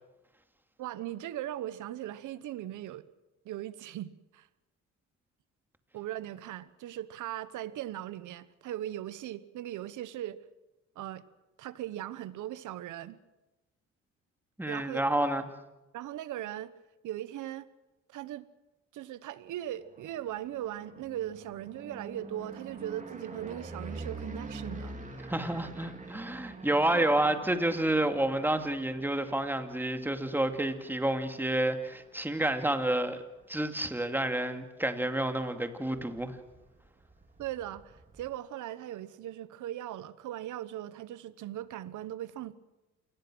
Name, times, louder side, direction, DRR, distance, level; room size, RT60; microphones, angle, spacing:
voice 1, 0.8-3.1 3.4-4.5 5.9-10.4 10.9-11.2 11.6-13.2 14.7-15.1 15.9-16.7 17.0-17.7 18.1-18.5 18.9-25.2 26.9-27.1 37.4-42.5, right 12 dB, 80° right, 1.1 m, -39 dB
voice 2, 14.6-15.5 25.3-33.2 33.5-36.4, right 1 dB, 5° right, 2.3 m, -29 dB
sound 1, 19.7-33.7 34.1-34.6 34.8-34.9 35.2-35.3 35.5-38.3, right 3 dB, 25° right, 3.5 m, -46 dB
28.0 x 20.0 x 6.2 m
cardioid pair, 90°, 30 cm